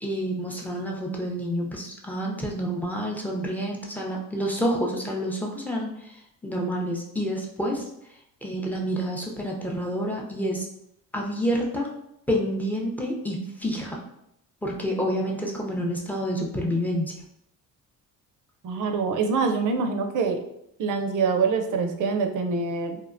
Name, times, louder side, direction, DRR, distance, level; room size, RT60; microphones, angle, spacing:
voice 1, 0.0-5.9 6.4-7.8 8.4-10.7 11.1-11.9 12.3-14.0 14.6-17.2, equal, 5° left, -2 dB, 0.5 m, -28 dB
voice 2, 18.6-20.4 20.8-23.0, right 4 dB, 55° right, 6 dB, 0.5 m, -25 dB
2.7 x 2.1 x 2.5 m, 0.76 s
cardioid pair, 80°, 39 cm